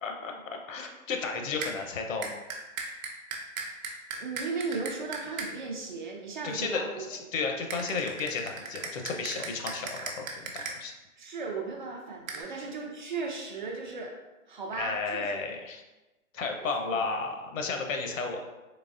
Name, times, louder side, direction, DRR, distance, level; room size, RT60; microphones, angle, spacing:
voice 1, 0.0-2.4 6.4-10.9 14.7-15.8 16.3-18.4, left 4 dB, 70° left, 3 dB, 0.7 m, -33 dB
sound 1, 1.6-1.7 2.2-5.5 7.7-10.7 12.3-12.4, right 4 dB, 75° right, 0.8 m, -36 dB
voice 2, 4.1-7.0 11.2-14.1 14.5-15.4, right 4 dB, 40° right, 0 dB, 0.4 m, -36 dB
3.9 x 3.1 x 2.5 m, 1.1 s
hypercardioid pair, 150°, 41 cm